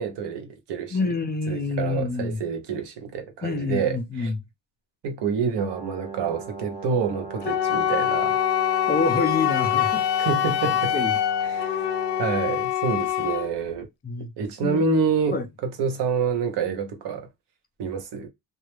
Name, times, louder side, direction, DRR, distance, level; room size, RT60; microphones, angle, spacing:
voice 1, 0.0-1.0 1.5-4.3 5.0-8.4 10.2-10.9 11.4-11.9 12.2-13.9 14.4-17.3 17.8-18.3, right 5 dB, 75° right, 0.8 m, -27 dB
voice 2, 0.9-2.4 3.4-4.4 8.9-10.0 10.9-11.1 14.0-14.3 14.6-14.8 15.3-15.5, left 4 dB, 25° left, 0.4 m, -27 dB
Brass instrument, 5.5-12.5, right 4 dB, 20° right, 0.6 m, -38 dB
Wind instrument woodwind instrument, 7.4-13.5, left 11 dB, 80° left, 0.5 m, -24 dB
2.2 x 2.0 x 3.0 m
cardioid pair, 125°, 42 cm